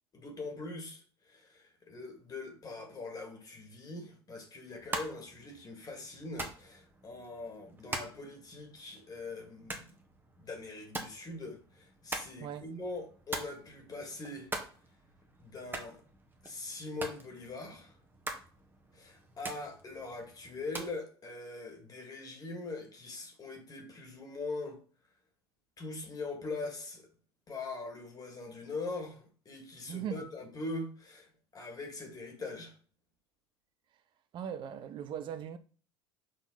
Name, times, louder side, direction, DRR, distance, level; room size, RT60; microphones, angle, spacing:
voice 1, 0.1-9.9 10.4-14.5 15.4-16.0 16.4-17.9 18.9-24.8 25.8-27.1 27.5-32.7, left 3 dB, 30° left, 2.4 m, -42 dB
sound 1, 4.7-21.0, right 2 dB, 15° right, 1.5 m, -44 dB
voice 2, 29.9-30.3 34.3-35.6, right 8 dB, 35° right, 0.6 m, -39 dB
6.4 x 3.9 x 4.1 m
figure-of-eight pair, 70°, 14 cm